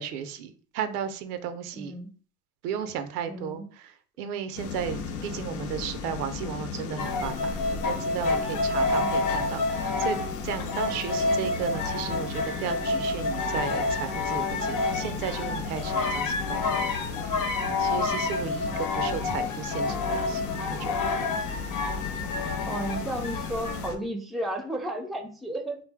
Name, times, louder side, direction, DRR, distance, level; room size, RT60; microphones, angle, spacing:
voice 1, 0.0-2.0 2.6-3.6 4.2-10.2 10.4-16.7 17.8-20.4 20.7-20.9, right 8 dB, 85° right, 10 dB, 0.5 m, -34 dB
voice 2, 1.7-2.1 3.3-3.7 8.7-9.1 18.9-19.0 22.7-25.8, right 1 dB, ahead, 5 dB, 0.4 m, -33 dB
sound 1, 4.6-24.0, left 5 dB, 75° left, 0.7 m, -36 dB
sound 2, 7.0-23.9, left 3 dB, 45° left, 0.9 m, -29 dB
2.6 x 2.0 x 3.3 m, 0.42 s
hypercardioid pair, 70°, 44 cm